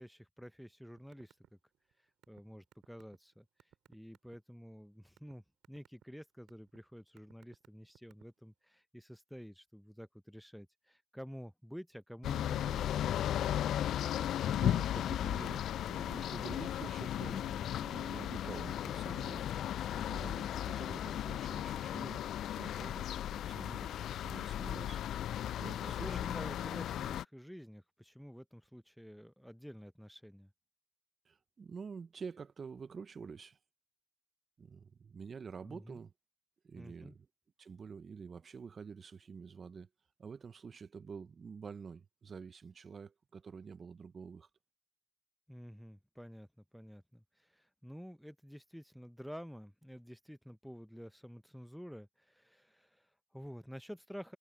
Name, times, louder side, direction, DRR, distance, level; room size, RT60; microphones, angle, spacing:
voice 1, 0.0-1.4 2.3-3.5 3.9-12.9 25.8-30.5 35.6-36.0 36.7-37.2 45.5-46.5 46.7-54.4, equal, ahead, 0.7 m, -50 dB
sound 1, 1.0-1.5 1.7-4.3 4.9-5.3 5.6-6.0 6.5-6.8 7.2-8.4, right 11 dB, 65° right, 4.3 m, -61 dB
sound 2, 12.2-27.2, left 11 dB, 65° left, 0.3 m, -36 dB
voice 2, 14.0-26.4 31.2-33.6 34.6-36.1 36.6-37.3 37.6-39.9 40.2-44.5, right 5 dB, 40° right, 0.6 m, -48 dB
supercardioid pair, 70°, 0 cm